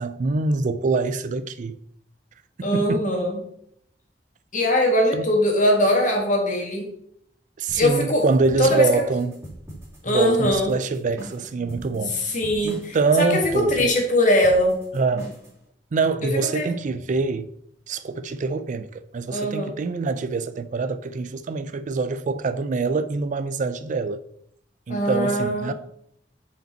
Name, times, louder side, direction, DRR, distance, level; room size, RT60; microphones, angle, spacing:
voice 1, 0.0-1.8 2.6-3.1 5.1-5.2 7.6-9.4 10.1-12.3 12.6-13.9 14.9-15.3 15.9-17.5 17.9-24.2 24.9-25.7, right 4 dB, 45° right, 0.4 m, -25 dB
voice 2, 2.6-3.4 4.5-6.9 7.7-8.2 8.6-9.0 10.0-10.7 12.1-14.8 16.5-16.7 19.3-19.7 24.9-25.7, left 1 dB, 45° left, 1.7 m, -21 dB
sound 1, 7.7-15.6, right 1 dB, 15° right, 2.4 m, -41 dB
5.4 x 5.1 x 4.4 m
head